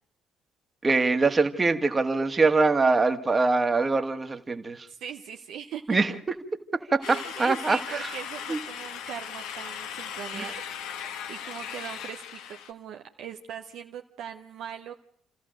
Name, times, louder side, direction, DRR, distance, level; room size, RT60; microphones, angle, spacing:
voice 1, 0.8-4.9 5.9-6.1 6.7-8.1 8.5-8.6 10.3-10.5, right 3 dB, 25° right, 1.8 m, -23 dB
voice 2, 4.9-6.2 7.0-11.0 11.3-14.9, right 8 dB, 60° right, 0.9 m, -40 dB
sound 1, 7.0-12.7, left 8 dB, 65° left, 1.2 m, -38 dB
29.0 x 14.5 x 6.5 m
figure-of-eight pair, 45°, 0 cm